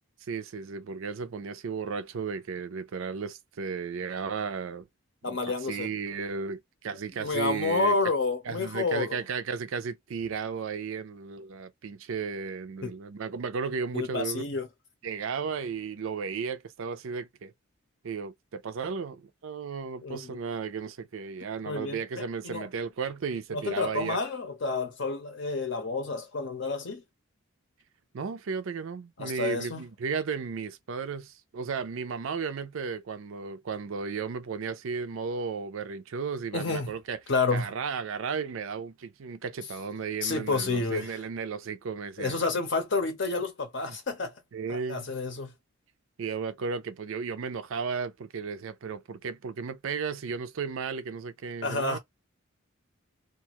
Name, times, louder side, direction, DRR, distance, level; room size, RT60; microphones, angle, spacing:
voice 1, 0.2-4.9 5.3-8.0 8.4-14.4 15.0-17.5 18.0-24.2 28.1-37.2 37.5-42.4 44.5-45.1 46.2-52.0, right 5 dB, 70° right, 0.4 m, -34 dB
voice 2, 5.2-5.9 7.2-9.2 12.8-12.9 13.9-14.7 20.0-20.4 21.7-22.7 23.5-27.0 29.2-29.8 36.5-36.9 37.3-37.7 40.2-41.2 42.2-44.4 44.7-45.5 51.6-52.0, left 3 dB, 55° left, 0.6 m, -29 dB
2.4 x 2.3 x 2.8 m
head